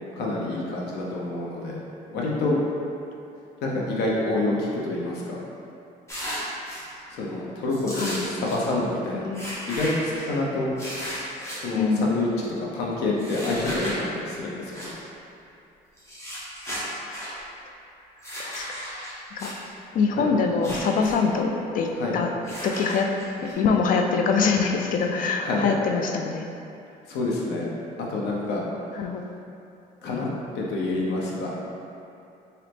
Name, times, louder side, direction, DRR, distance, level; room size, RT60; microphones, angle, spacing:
voice 1, 0.2-1.8 2.1-2.6 3.6-5.4 7.1-9.2 9.7-10.7 11.5-14.9 20.2-20.3 21.9-22.2 25.1-25.7 27.1-27.7 28.1-28.6 30.0-30.3 30.5-31.7, left 2 dB, 80° left, -3 dB, 0.8 m, -27 dB
sound 1, 6.1-6.8 7.7-8.6 9.3-10.3 10.8-11.6 13.2-14.0 14.7-14.9 16.0-17.3 18.2-19.5 20.5-21.1 21.4-21.5 22.4-23.5, equal, 15° left, 1.2 m, -35 dB
voice 2, 9.1-9.5 11.8-12.1 18.4-18.7 19.4-19.5 19.9-22.3 22.6-23.1 23.4-26.4 29.0-29.2 30.2-30.3, left 5 dB, 55° left, 3 dB, 0.4 m, -24 dB
3.9 x 2.8 x 3.4 m, 2.7 s
cardioid pair, 110°, 17 cm